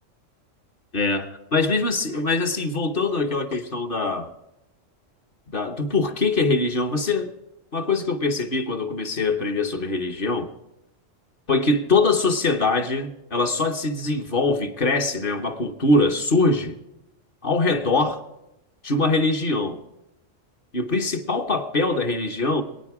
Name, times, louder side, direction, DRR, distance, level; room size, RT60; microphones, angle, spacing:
voice 1, 0.9-4.3 5.5-7.3 7.7-10.5 11.5-16.8 17.4-18.2 18.8-19.8 20.7-22.6, left 3 dB, 45° left, 1.2 m, -23 dB
25.5 x 9.1 x 4.8 m
omnidirectional pair, 1.3 m